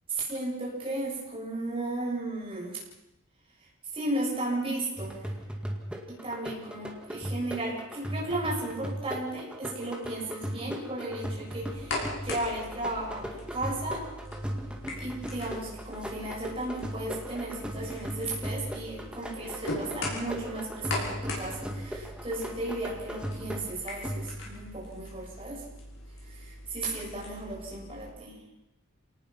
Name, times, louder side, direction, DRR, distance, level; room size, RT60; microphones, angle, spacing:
voice 1, 0.1-2.8 3.9-5.3 6.1-14.1 15.0-25.6 26.2-28.4, right 2 dB, 25° right, -3 dB, 7.1 m, -35 dB
sound 1, 5.0-24.6, equal, 5° right, 2.1 m, -38 dB
sound 2, 11.6-28.1, left 2 dB, 60° left, 6.1 m, -41 dB
28.0 x 19.0 x 6.0 m, 0.97 s
head